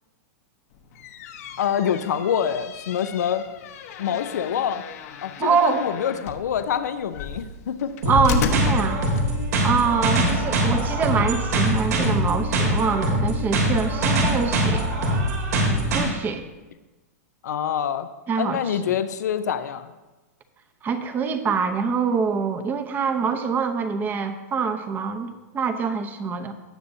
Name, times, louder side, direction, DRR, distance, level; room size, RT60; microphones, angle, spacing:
sound 1, 0.8-9.7, left 7 dB, 65° left, 1.0 m, -33 dB
voice 1, 1.6-3.4 4.0-4.8 5.2-8.1 10.2-10.7 17.4-18.1 18.4-19.9, left 8 dB, 85° left, 10 dB, 0.6 m, -26 dB
voice 2, 5.4-5.8 8.1-9.0 9.6-14.9 15.9-16.5 18.3-18.6 20.8-26.5, right 5 dB, 20° right, 8 dB, 0.8 m, -24 dB
sound 2, 8.0-16.0, right 1 dB, 80° right, 2.9 m, -23 dB
17.5 x 6.8 x 2.7 m, 1.1 s
hypercardioid pair, 140°, 9 cm